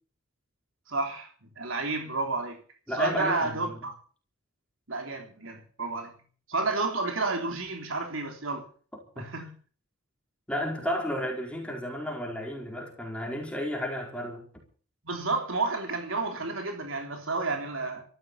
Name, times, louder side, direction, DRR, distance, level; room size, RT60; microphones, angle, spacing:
voice 1, 0.9-1.3 1.6-2.6 2.9-3.9 4.9-6.1 6.5-8.6 9.2-9.5 15.0-18.0, right 3 dB, 90° right, 3.4 m, -30 dB
voice 2, 2.9-3.8 9.2-9.3 10.5-14.4, left 1 dB, 5° left, 4.9 m, -32 dB
14.5 x 12.5 x 7.1 m
head